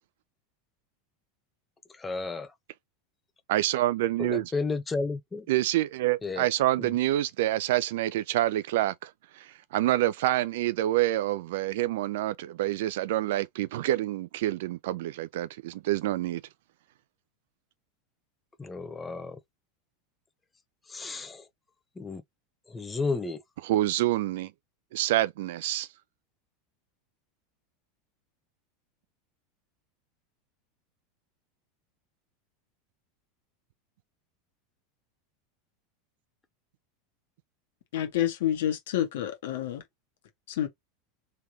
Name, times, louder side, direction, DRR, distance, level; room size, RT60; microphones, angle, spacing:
voice 1, 2.0-2.5 4.2-5.4 6.2-6.5 6.8-6.9 18.6-19.4 20.9-21.5 22.0-22.2 22.7-23.4, left 3 dB, 15° left, 0.7 m, -32 dB
voice 2, 3.5-4.5 5.5-16.4 23.6-24.5 24.9-25.9, right 15 dB, 60° right, 0.4 m, -27 dB
voice 3, 37.9-39.8 40.5-40.7, left 11 dB, 60° left, 1.4 m, -28 dB
3.4 x 3.3 x 2.8 m
figure-of-eight pair, 80°, 0 cm